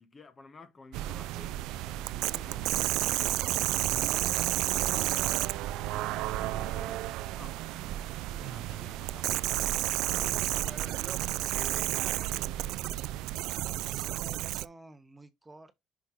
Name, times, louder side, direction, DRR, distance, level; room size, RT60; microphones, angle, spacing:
voice 1, 0.0-2.7 3.0-5.4 5.8-9.5 10.0-10.5, left 4 dB, 25° left, 1.0 m, -52 dB
sound 1, 0.9-14.7, right 16 dB, 80° right, 0.3 m, -31 dB
voice 2, 10.5-12.8 13.4-15.7, right 2 dB, 15° right, 0.9 m, -49 dB
6.0 x 5.4 x 3.1 m
cardioid pair, 120°, 0 cm